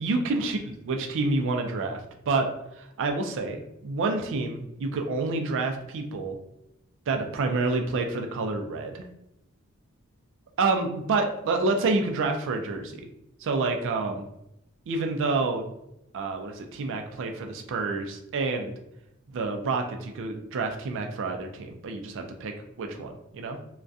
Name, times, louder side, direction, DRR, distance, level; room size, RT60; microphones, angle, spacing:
voice 1, 0.0-2.0 2.3-2.5 3.0-6.4 7.1-9.0 10.6-13.0 13.4-14.3 14.9-15.6 16.1-18.7 19.3-23.6, right 3 dB, 60° right, 4 dB, 0.4 m, -28 dB
2.3 x 2.1 x 2.6 m, 0.82 s
head